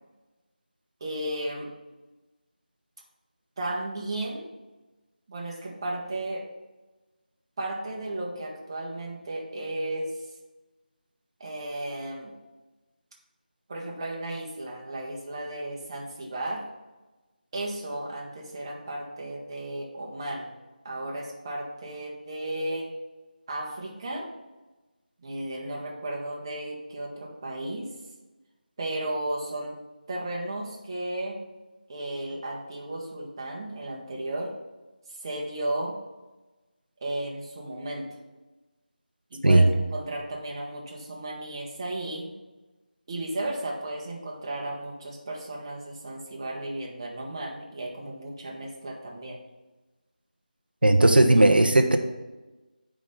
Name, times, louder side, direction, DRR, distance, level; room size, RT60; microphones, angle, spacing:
voice 1, 1.0-1.7 3.6-4.5 5.3-6.4 7.6-10.1 11.4-12.3 13.7-16.7 17.5-20.5 20.8-22.9 23.5-24.3 25.2-27.9 28.8-29.7 30.1-31.4 31.9-34.5 35.1-35.9 37.0-38.1 39.3-42.3 43.1-49.4, right 1 dB, 30° right, -2 dB, 1.2 m, -34 dB
voice 2, 50.8-52.0, right 1 dB, 85° right, 6 dB, 0.8 m, -17 dB
7.4 x 5.0 x 5.6 m, 1.1 s
figure-of-eight pair, 165°, 5 cm